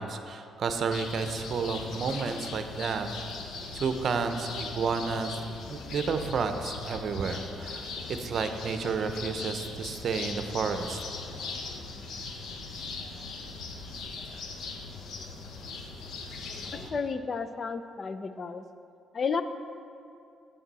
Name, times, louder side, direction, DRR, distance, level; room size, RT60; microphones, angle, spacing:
voice 1, 0.0-3.1 3.7-5.4 5.7-7.9 8.2-11.0, right 5 dB, 60° right, 7 dB, 0.7 m, -31 dB
sound 1, 0.9-16.9, left 3 dB, 75° left, 0.9 m, -40 dB
voice 2, 16.9-18.6 19.1-19.4, left 5 dB, 40° left, 10 dB, 0.5 m, -32 dB
8.7 x 8.6 x 4.1 m, 2.5 s
cardioid pair, 90°, 0 cm